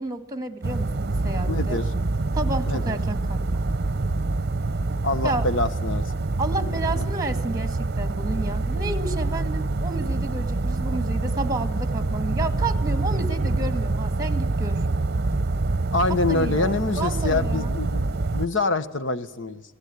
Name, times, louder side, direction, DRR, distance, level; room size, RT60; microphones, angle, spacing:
voice 1, 0.0-1.8 2.3-3.6 5.2-5.4 6.4-14.8 16.3-17.7, right 2 dB, 20° right, 9 dB, 2.1 m, -31 dB
sound 1, 0.6-18.5, right 2 dB, 55° right, 0.8 m, -26 dB
voice 2, 1.5-1.8 2.7-3.0 5.0-6.0 6.6-7.0 15.9-19.6, left 3 dB, 75° left, 11 dB, 1.4 m, -26 dB
27.0 x 18.0 x 9.7 m, 1.1 s
head